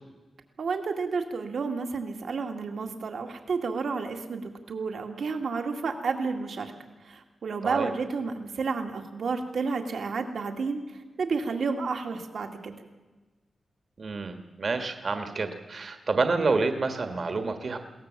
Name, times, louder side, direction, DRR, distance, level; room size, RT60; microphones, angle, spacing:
voice 1, 0.6-6.7 7.0-12.7, right 4 dB, 70° right, 5 dB, 2.1 m, -31 dB
voice 2, 14.0-17.8, right 3 dB, 45° right, 7 dB, 1.5 m, -28 dB
22.0 x 18.0 x 7.4 m, 1.2 s
wide cardioid pair, 150°, 0 cm